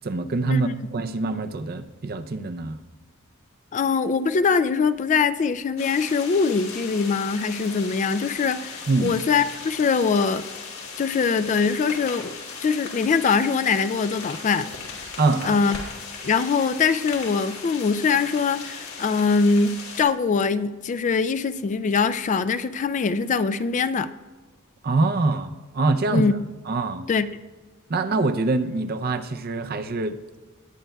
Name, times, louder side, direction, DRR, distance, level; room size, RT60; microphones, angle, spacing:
voice 1, 0.0-2.8 8.9-9.2 15.2-15.6 24.8-26.4 26.7-27.1 27.9-30.2, right 3 dB, 45° right, 0.5 m, -24 dB
voice 2, 3.7-10.4 11.0-12.3 12.6-14.7 15.4-15.8 16.2-24.1 26.1-26.3 27.1-27.3, left 5 dB, 35° left, 0.3 m, -22 dB
sound 1, 5.8-20.0, left 4 dB, 90° left, 2.8 m, -38 dB
20.0 x 9.1 x 2.3 m
head